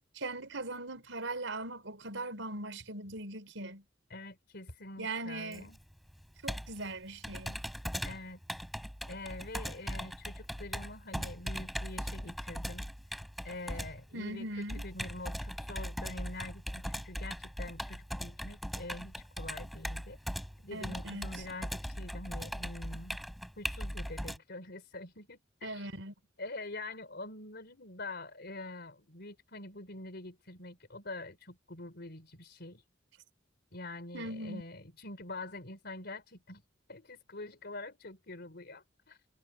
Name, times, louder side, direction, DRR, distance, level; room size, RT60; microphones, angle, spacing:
voice 1, 0.0-3.8 5.0-5.7 6.4-7.6 14.1-14.8 20.7-21.4 25.6-26.1 34.1-34.6, right 2 dB, 85° right, 4.6 m, -40 dB
voice 2, 4.1-5.8 8.0-8.6 9.1-12.9 13.4-20.2 20.6-23.2 23.6-25.9 26.4-32.8 33.7-36.6 36.9-39.2, left 2 dB, 60° left, 4.1 m, -45 dB
Computer keyboard, 5.5-24.4, equal, ahead, 4.3 m, -40 dB
head